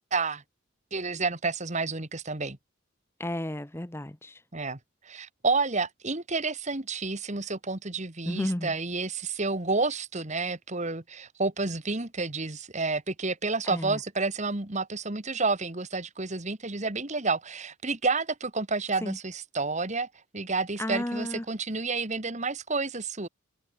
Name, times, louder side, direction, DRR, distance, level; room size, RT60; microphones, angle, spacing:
voice 1, 0.1-0.4 0.9-2.6 4.5-4.8 5.0-20.1 20.3-23.3, right 3 dB, 35° right, 1.8 m, -30 dB
voice 2, 3.2-4.4 8.3-8.7 13.7-14.0 19.0-19.2 20.8-21.4, left 1 dB, 10° left, 0.9 m, -32 dB
head